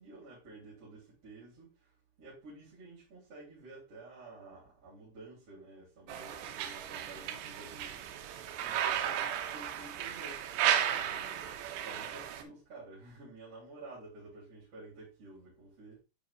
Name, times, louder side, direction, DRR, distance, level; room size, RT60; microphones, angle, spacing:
voice 1, 0.0-1.7 2.2-8.0 8.6-10.4 10.8-16.0, right 2 dB, 35° right, 3.9 m, -51 dB
sound 1, 6.1-12.4, right 10 dB, 85° right, 2.9 m, -34 dB
9.8 x 4.7 x 2.4 m
omnidirectional pair, 5.0 m